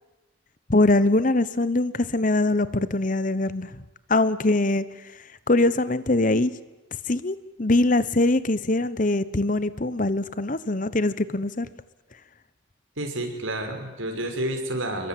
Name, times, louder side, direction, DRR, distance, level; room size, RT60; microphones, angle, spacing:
voice 1, 0.7-3.7 4.1-4.9 5.5-6.5 7.1-11.7, left 2 dB, 40° left, 16 dB, 1.1 m, -22 dB
voice 2, 13.0-15.1, right 1 dB, 80° right, 5 dB, 5.8 m, -29 dB
27.5 x 22.5 x 9.3 m, 1.1 s
head